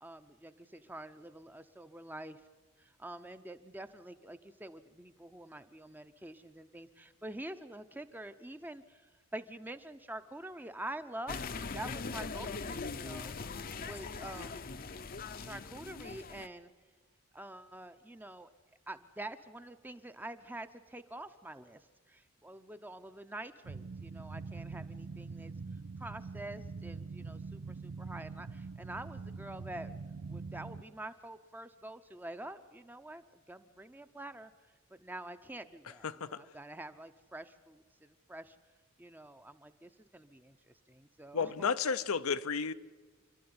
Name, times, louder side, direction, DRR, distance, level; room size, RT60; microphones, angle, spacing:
voice 1, 0.0-2.4 2.8-13.3 13.8-14.6 15.4-16.7 17.3-18.5 18.9-25.5 26.0-29.9 30.3-34.5 34.9-38.6 39.0-41.7, right 1 dB, 10° right, 0.6 m, -47 dB
sound 1, 11.3-16.5, left 4 dB, 45° left, 0.7 m, -41 dB
sound 2, 23.6-30.8, right 4 dB, 70° right, 0.6 m, -44 dB
voice 2, 36.0-36.4 41.3-42.7, left 5 dB, 80° left, 0.7 m, -32 dB
27.5 x 12.5 x 9.6 m
head